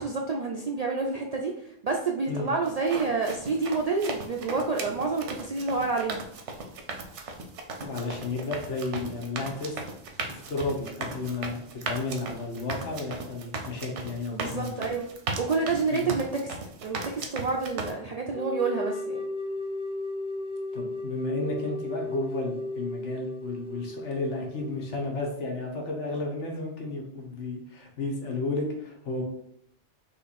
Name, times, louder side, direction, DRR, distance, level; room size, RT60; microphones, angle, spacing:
voice 1, 0.0-6.2 14.3-15.1 15.4-16.6 16.8-19.2, right 4 dB, 60° right, 0 dB, 0.4 m, -28 dB
sound 1, 2.7-17.9, right 3 dB, 85° right, 1.0 m, -37 dB
voice 2, 7.8-9.8 10.3-14.7 15.9-16.1 20.7-29.2, left 2 dB, 85° left, 0 dB, 1.4 m, -33 dB
sound 2, 18.3-25.1, left 2 dB, 5° right, 0.6 m, -35 dB
3.8 x 3.1 x 4.1 m, 0.72 s
omnidirectional pair, 1.2 m